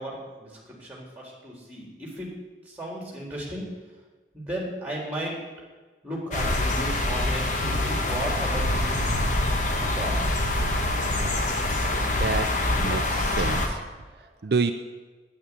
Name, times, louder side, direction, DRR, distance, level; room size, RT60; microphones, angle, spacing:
voice 1, 0.0-2.3 2.7-3.6 4.3-5.3 6.0-9.0 10.0-10.2, right 1 dB, 10° right, -2 dB, 3.6 m, -35 dB
sound 1, 6.3-13.7, left 1 dB, 45° left, 1.3 m, -25 dB
voice 2, 11.9-12.5 12.8-13.8 14.4-14.7, right 4 dB, 60° right, 7 dB, 0.5 m, -28 dB
9.4 x 9.1 x 8.5 m, 1.3 s
head